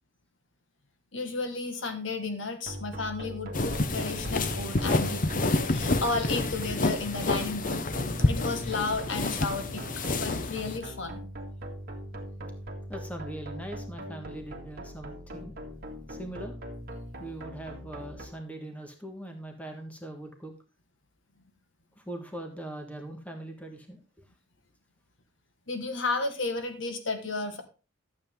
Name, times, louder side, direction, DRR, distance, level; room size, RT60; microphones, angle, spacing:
voice 1, 1.1-7.8 8.3-9.9 10.2-11.2 25.7-27.6, left 3 dB, 60° left, 7 dB, 1.5 m, -33 dB
sound 1, 2.7-18.3, equal, 45° right, 1.8 m, -41 dB
sound 2, 3.5-10.8, left 2 dB, 40° left, 0.7 m, -29 dB
voice 2, 12.9-15.5 16.1-16.6 17.2-20.5 22.0-24.0, right 1 dB, 5° left, 4 dB, 1.4 m, -41 dB
12.0 x 7.7 x 3.6 m, 0.32 s
head